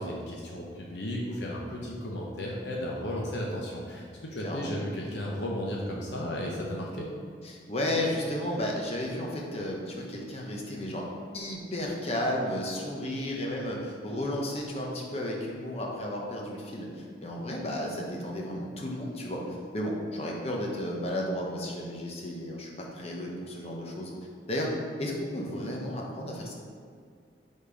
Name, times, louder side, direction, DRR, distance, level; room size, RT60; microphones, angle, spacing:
voice 1, 0.0-7.1, left 1 dB, 70° left, -3 dB, 0.8 m, -34 dB
voice 2, 7.4-11.1 11.3-24.1 24.5-24.7 25.0-26.5, left 1 dB, 35° left, -1 dB, 0.9 m, -33 dB
5.2 x 4.3 x 4.9 m, 2.2 s
head